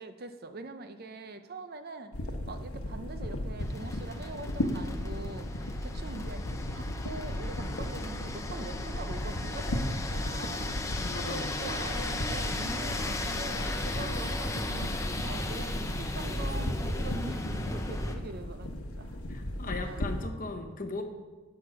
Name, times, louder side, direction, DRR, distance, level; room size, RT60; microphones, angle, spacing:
voice 1, 0.0-10.9 11.2-19.2 19.8-20.1, right 2 dB, 45° right, 8 dB, 0.6 m, -43 dB
sound 1, 2.1-20.3, left 1 dB, 85° left, 1.0 m, -36 dB
sound 2, 3.6-18.2, left 2 dB, 15° left, 0.6 m, -36 dB
voice 2, 11.0-11.5 19.3-21.0, left 3 dB, 40° left, 5 dB, 1.0 m, -38 dB
11.0 x 6.5 x 6.0 m, 1.3 s
head